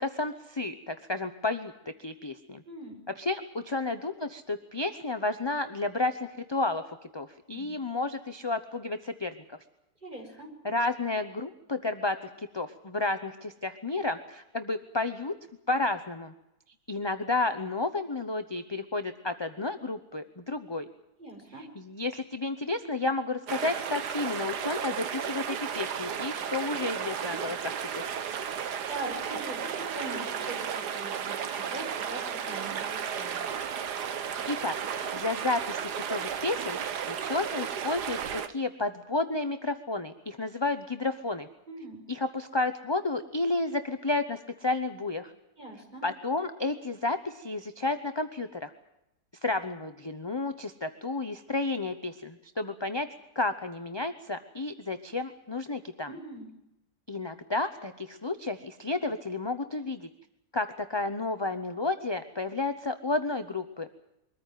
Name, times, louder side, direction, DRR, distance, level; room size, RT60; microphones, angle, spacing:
voice 1, 0.0-2.6 3.2-6.8 7.1-9.6 10.6-15.3 15.7-16.3 16.9-20.9 21.6-28.0 34.5-36.8 37.1-41.5 42.1-45.3 46.0-48.7 49.4-53.1 53.3-56.1 57.1-60.1 60.5-64.0, left 2 dB, 20° left, 8 dB, 0.8 m, -31 dB
voice 2, 2.7-3.0 7.5-7.7 10.0-10.5 21.2-21.6 28.6-33.4 41.7-42.0 45.6-46.0 56.1-56.5, right 2 dB, 30° right, 2 dB, 5.7 m, -42 dB
sound 1, 23.5-38.5, right 7 dB, 90° right, 1.7 m, -34 dB
23.5 x 14.5 x 9.3 m, 0.86 s
omnidirectional pair, 1.7 m